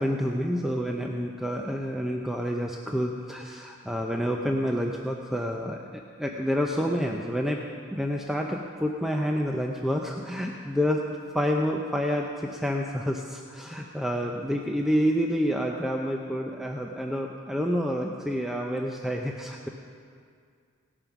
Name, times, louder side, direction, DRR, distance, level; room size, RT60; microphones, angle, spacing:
voice 1, 0.0-7.6 7.9-11.0 11.3-19.7, equal, ahead, 0 dB, 0.5 m, -28 dB
17.5 x 8.8 x 6.0 m, 2.2 s
head